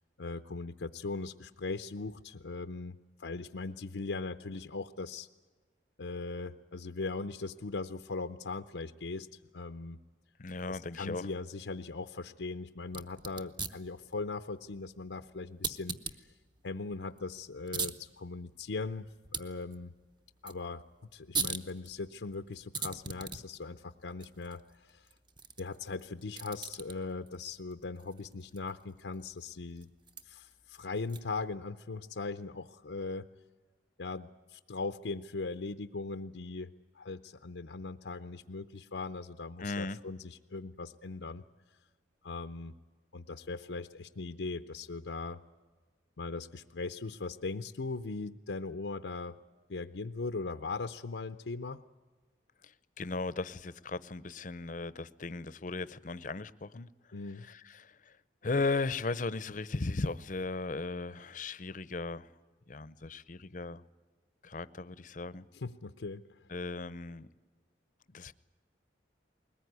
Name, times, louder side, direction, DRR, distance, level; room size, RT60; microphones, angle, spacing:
voice 1, 0.2-5.3 6.0-10.0 10.7-16.3 16.6-19.9 20.4-20.8 21.1-25.1 25.6-29.9 30.2-33.3 34.0-41.4 42.2-42.7 43.1-45.4 46.2-49.4 49.7-51.8 57.1-57.5 65.5-66.4, left 3 dB, 85° left, 9 dB, 0.6 m, -39 dB
voice 2, 10.4-11.3 39.6-40.0 52.6-56.9 57.4-58.2 58.4-62.3 62.7-63.8 64.4-65.4 66.5-67.3 68.1-68.3, left 3 dB, 45° left, 16 dB, 0.6 m, -36 dB
sound 1, 12.8-31.5, right 5 dB, 25° right, 0.9 m, -43 dB
21.5 x 19.5 x 9.5 m, 1.4 s
head